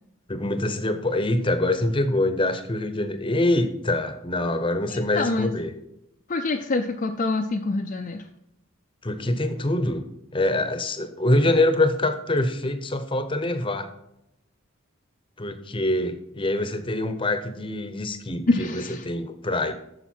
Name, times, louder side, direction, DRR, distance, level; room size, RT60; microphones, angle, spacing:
voice 1, 0.3-5.7 9.0-10.0 10.3-13.9 15.4-19.7, left 1 dB, 25° left, 9 dB, 0.8 m, -25 dB
voice 2, 4.9-5.5 6.3-8.3 18.5-19.1, left 3 dB, 40° left, 3 dB, 0.5 m, -26 dB
9.1 x 6.5 x 4.4 m, 0.82 s
head